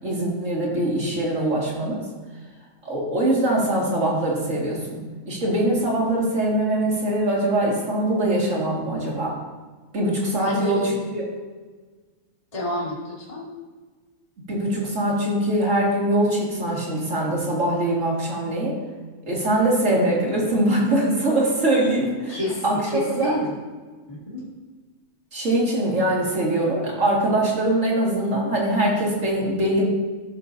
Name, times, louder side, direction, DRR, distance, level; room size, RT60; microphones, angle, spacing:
voice 1, 0.0-2.0 2.8-9.4 9.9-10.8 11.1-11.3 14.5-18.8 19.3-22.4 22.6-23.3 25.3-29.8, right 1 dB, 55° right, -4 dB, 2.5 m, -22 dB
voice 2, 10.4-10.8 12.5-13.5 22.3-23.5 24.1-24.4, left 1 dB, 25° left, -7 dB, 2.3 m, -29 dB
13.5 x 6.8 x 2.7 m, 1.4 s
omnidirectional pair, 1.6 m